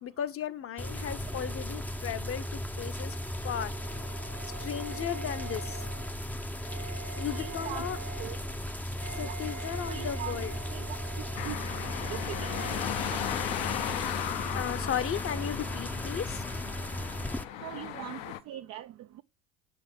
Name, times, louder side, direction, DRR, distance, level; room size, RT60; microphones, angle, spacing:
voice 1, 0.0-3.2 3.4-3.7 4.6-5.9 7.1-8.0 9.2-10.5 14.5-16.4, left 9 dB, 35° left, 0.9 m, -35 dB
sound 1, 0.8-17.4, left 1 dB, 5° left, 0.6 m, -36 dB
Wind instrument woodwind instrument, 2.9-12.9, right 6 dB, 85° right, 1.1 m, -47 dB
voice 2, 7.3-7.9 8.2-8.4 9.2-9.4 9.9-11.0 11.4-11.6 12.1-12.5 13.1-13.2 17.6-19.2, right 13 dB, 40° right, 0.5 m, -41 dB
sound 2, 11.4-18.4, left 12 dB, 60° left, 0.9 m, -36 dB
7.1 x 6.5 x 7.3 m
hypercardioid pair, 70°, 39 cm